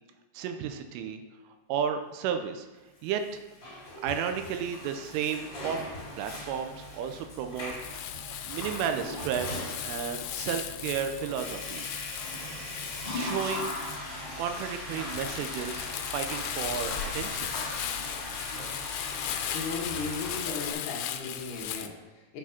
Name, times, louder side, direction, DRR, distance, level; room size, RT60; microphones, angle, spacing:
voice 1, 0.3-1.2 1.7-2.7 3.0-3.4 4.0-5.8 6.2-12.0 13.1-13.7 14.4-15.8 16.1-17.5, right 8 dB, 80° right, 7 dB, 3.1 m, -33 dB
Water / Toilet flush, 3.2-20.7, left 1 dB, 25° left, 3.3 m, -39 dB
Crumpling crinkling, 7.6-21.9, left 11 dB, 85° left, 3.2 m, -37 dB
voice 2, 19.5-22.4, left 4 dB, 65° left, -2 dB, 3.1 m, -36 dB
8.4 x 7.3 x 5.8 m, 1.2 s
omnidirectional pair, 5.8 m